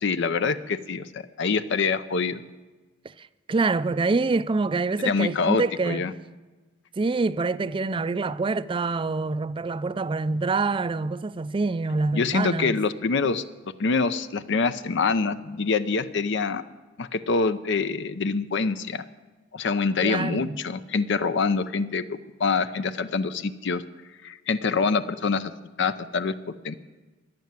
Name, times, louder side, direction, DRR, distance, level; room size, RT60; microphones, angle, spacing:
voice 1, 0.0-2.4 5.0-6.1 12.1-13.4 13.8-16.6 17.0-19.0 19.5-23.8 24.2-25.5 25.8-26.7, left 4 dB, 65° left, 0.6 m, -25 dB
voice 2, 3.0-6.1 7.0-12.8 20.0-20.6, right 3 dB, 25° right, 0.4 m, -26 dB
15.0 x 10.5 x 7.5 m
head